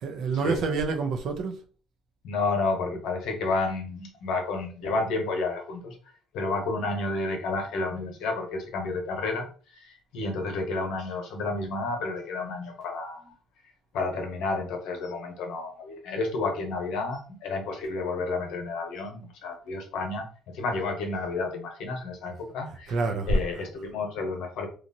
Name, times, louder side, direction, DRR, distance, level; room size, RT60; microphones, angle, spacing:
voice 1, 0.0-1.6 22.7-23.5, right 3 dB, 65° right, 0.6 m, -27 dB
voice 2, 2.2-6.0 6.3-9.5 9.7-13.3 13.9-20.2 20.5-22.9 23.3-24.7, left 3 dB, 75° left, 0.9 m, -31 dB
3.0 x 2.4 x 2.7 m
supercardioid pair, 90°, 0 cm